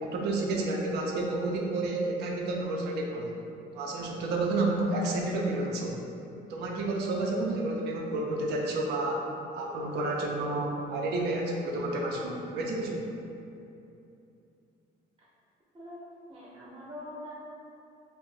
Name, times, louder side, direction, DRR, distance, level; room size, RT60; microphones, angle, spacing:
voice 1, 0.0-3.3 3.7-6.0 6.5-9.3 9.5-13.0, right 2 dB, 80° right, -1 dB, 0.6 m, -30 dB
voice 2, 16.3-17.3, left 1 dB, 30° right, -7 dB, 0.7 m, -43 dB
2.7 x 2.5 x 3.7 m, 2.7 s
cardioid pair, 110°, 17 cm